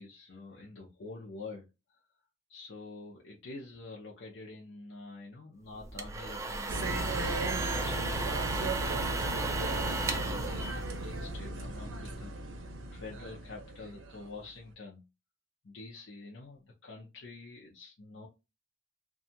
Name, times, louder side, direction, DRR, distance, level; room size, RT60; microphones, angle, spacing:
voice 1, 0.0-2.0 2.5-15.0 15.6-18.3, left 3 dB, 65° left, 0.6 m, -47 dB
sound 1, 5.8-11.5, right 3 dB, 15° right, 0.3 m, -35 dB
sound 2, 6.7-14.5, right 1 dB, 75° right, 0.6 m, -36 dB
2.6 x 2.3 x 2.7 m
head